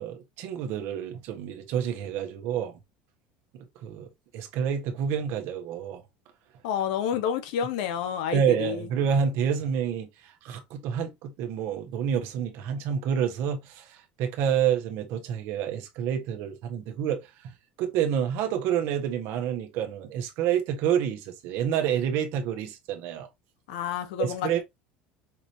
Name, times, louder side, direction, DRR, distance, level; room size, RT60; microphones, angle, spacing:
voice 1, 0.0-2.7 3.5-4.1 4.3-6.0 8.3-17.5 17.8-23.3 24.2-24.6, right 8 dB, 65° right, 1.4 m, -28 dB
voice 2, 6.6-8.9 23.7-24.5, left 9 dB, 80° left, 0.9 m, -29 dB
5.9 x 2.7 x 3.1 m
supercardioid pair, 110°, 4 cm